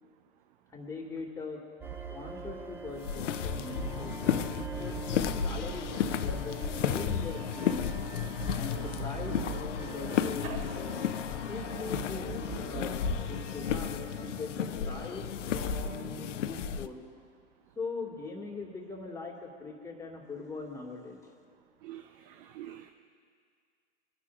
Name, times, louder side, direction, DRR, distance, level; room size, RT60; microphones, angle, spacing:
voice 1, 0.7-1.6 2.1-7.9 8.5-11.0 11.5-17.0 17.8-21.3, left 3 dB, 10° left, 0 dB, 2.0 m, -41 dB
sound 1, 1.8-17.1, right 7 dB, 5° right, 0.3 m, -43 dB
sound 2, 3.0-16.9, left 8 dB, 80° left, 0.6 m, -33 dB
voice 2, 21.8-22.9, right 12 dB, 45° right, 7 dB, 0.7 m, -44 dB
24.0 x 10.0 x 2.5 m, 2.1 s
hypercardioid pair, 115°, 36 cm